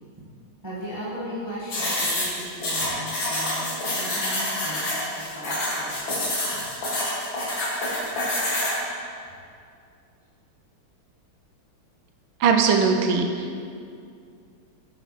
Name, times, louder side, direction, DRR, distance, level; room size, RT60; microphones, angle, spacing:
voice 1, 0.6-5.0 5.3-6.7, equal, 15° right, -9 dB, 1.5 m, -37 dB
sound 1, 1.7-8.8, left 1 dB, 65° left, 2.4 m, -27 dB
voice 2, 12.4-13.6, right 5 dB, 70° right, 4 dB, 1.4 m, -20 dB
9.0 x 5.8 x 4.1 m, 2.3 s
omnidirectional pair, 2.3 m